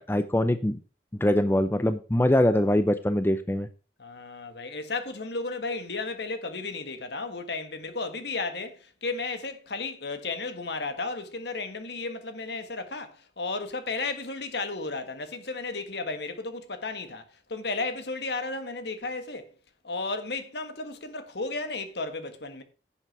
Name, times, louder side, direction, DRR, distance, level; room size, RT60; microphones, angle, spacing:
voice 1, 0.1-0.8 1.2-3.7, left 1 dB, 10° left, 0.5 m, -23 dB
voice 2, 4.0-19.5 19.8-22.6, left 3 dB, 70° left, 1.6 m, -34 dB
10.5 x 7.3 x 4.7 m
head